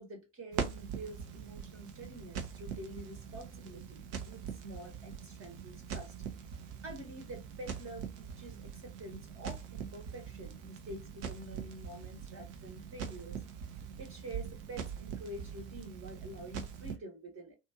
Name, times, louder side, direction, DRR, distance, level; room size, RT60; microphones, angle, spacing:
voice 1, 0.0-6.1 6.8-13.4 14.0-17.6, right 1 dB, 40° right, 1.1 m, -47 dB
Crackle, 0.5-17.0, right 7 dB, 65° right, 0.7 m, -43 dB
2.6 x 2.3 x 2.8 m
hypercardioid pair, 55°, 36 cm